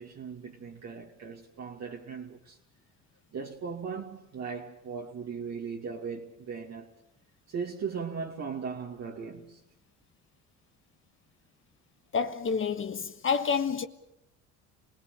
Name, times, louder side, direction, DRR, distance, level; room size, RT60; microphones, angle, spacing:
voice 1, 0.0-2.6 3.3-7.0 7.5-9.6, right 6 dB, 50° right, 2.5 m, -38 dB
voice 2, 12.1-13.9, left 6 dB, 35° left, 1.3 m, -28 dB
27.5 x 18.0 x 8.2 m
supercardioid pair, 70°, 34 cm